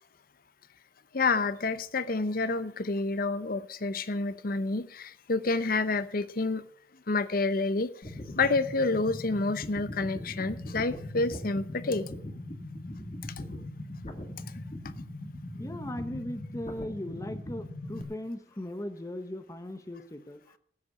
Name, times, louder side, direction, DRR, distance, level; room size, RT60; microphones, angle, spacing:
voice 1, 1.1-6.7 7.1-7.9 8.4-12.1, left 3 dB, 55° left, 0.8 m, -29 dB
sound 1, 8.0-18.0, left 1 dB, 40° left, 1.9 m, -40 dB
voice 2, 15.6-20.6, left 1 dB, 20° left, 0.9 m, -38 dB
14.5 x 8.2 x 6.9 m
head